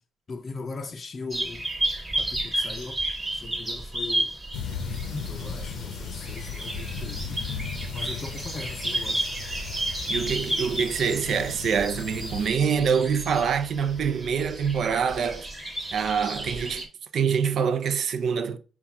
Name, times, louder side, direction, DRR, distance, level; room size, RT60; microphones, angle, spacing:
voice 1, 0.3-1.6 2.1-3.0 3.3-4.3 5.1-7.4 7.9-9.3, left 4 dB, 40° left, 0.5 m, -39 dB
sound 1, 1.3-16.9, right 1 dB, 20° right, 1.3 m, -32 dB
sound 2, 4.5-12.5, left 6 dB, 80° left, 0.6 m, -36 dB
voice 2, 10.1-15.5 15.9-16.9 17.1-18.6, right 6 dB, 65° right, 0.5 m, -25 dB
5.6 x 2.3 x 3.4 m
cardioid pair, 90°, 0 cm